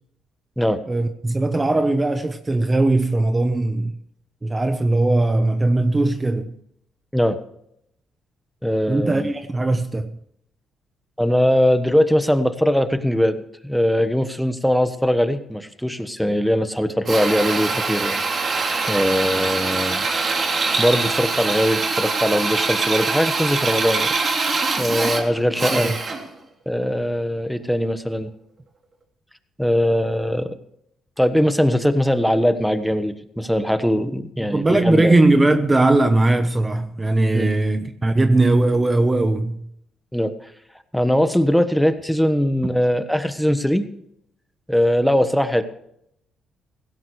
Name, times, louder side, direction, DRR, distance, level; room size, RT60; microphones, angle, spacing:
voice 1, 0.9-3.9 4.4-6.6 8.9-10.1 25.4-26.0 34.5-39.6, right 2 dB, 20° right, 1.0 m, -19 dB
voice 2, 8.6-9.3 11.2-18.2 18.9-20.1 20.8-24.1 24.8-25.9 26.6-28.3 29.6-30.5 31.2-35.2 37.3-37.5 40.1-40.3 40.9-43.9 44.7-45.6, equal, ahead, 1.3 m, -20 dB
Drill, 17.1-26.3, right 4 dB, 40° right, 3.1 m, -23 dB
17.0 x 16.0 x 3.3 m
cardioid pair, 90°, 0 cm